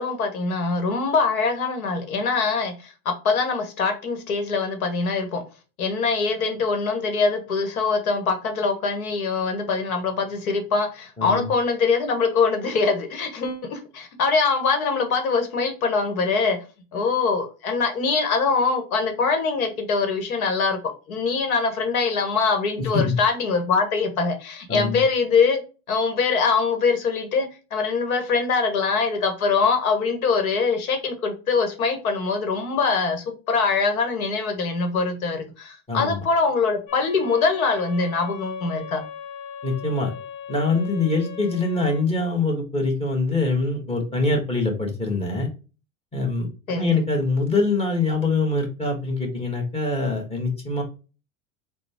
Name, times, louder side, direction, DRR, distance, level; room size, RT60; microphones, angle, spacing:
voice 1, 0.0-5.4 5.8-16.6 16.9-20.8 21.1-25.6 25.9-39.0 46.7-47.0, left 4 dB, 85° left, 1.1 m, -23 dB
voice 2, 22.8-23.1 24.7-25.0 35.9-36.2 39.6-40.1 40.5-45.5 46.1-50.8, left 3 dB, 15° left, 1.3 m, -24 dB
sound 1, 36.9-42.0, left 8 dB, 65° left, 0.9 m, -39 dB
3.9 x 2.2 x 3.4 m
hypercardioid pair, 100°, 41 cm